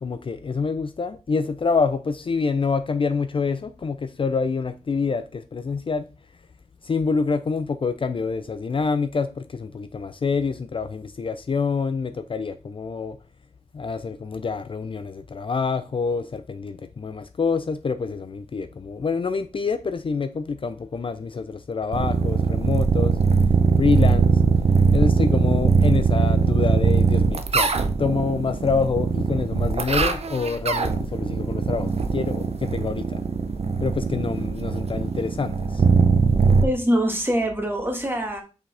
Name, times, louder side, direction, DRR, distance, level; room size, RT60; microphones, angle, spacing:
voice 1, 0.0-6.1 6.8-13.2 13.7-23.2 23.8-24.4 24.9-33.2 33.8-35.8, left 5 dB, 45° left, 0.5 m, -26 dB
sound 1, 21.9-36.6, right 5 dB, 55° right, 0.7 m, -21 dB
voice 2, 36.4-38.4, equal, 15° right, 1.6 m, -24 dB
6.0 x 4.9 x 3.4 m
wide cardioid pair, 100°, 12 cm